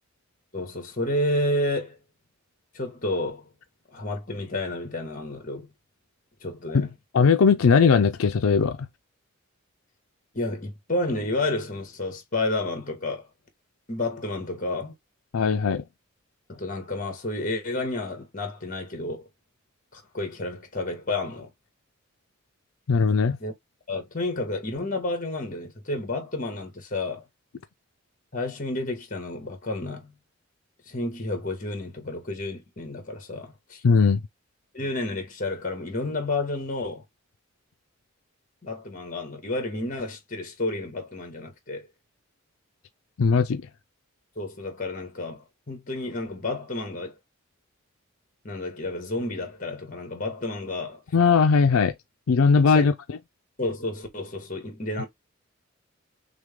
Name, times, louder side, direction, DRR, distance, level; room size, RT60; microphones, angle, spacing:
voice 1, 0.5-2.0 2.7-3.5 3.9-5.7 6.4-6.9 10.3-13.3 13.9-14.9 16.5-19.3 19.9-21.5 23.4-23.5 23.9-27.3 28.3-30.1 30.9-33.8 34.7-37.0 38.6-41.9 44.4-47.2 48.4-51.0 52.7-52.9 53.6-55.1, left 2 dB, 40° left, 1.8 m, -30 dB
voice 2, 7.1-8.8 15.3-15.8 22.9-23.4 33.8-34.2 43.2-43.6 51.1-51.9 52.3-52.9, left 5 dB, 85° left, 0.5 m, -19 dB
6.2 x 2.3 x 3.5 m
head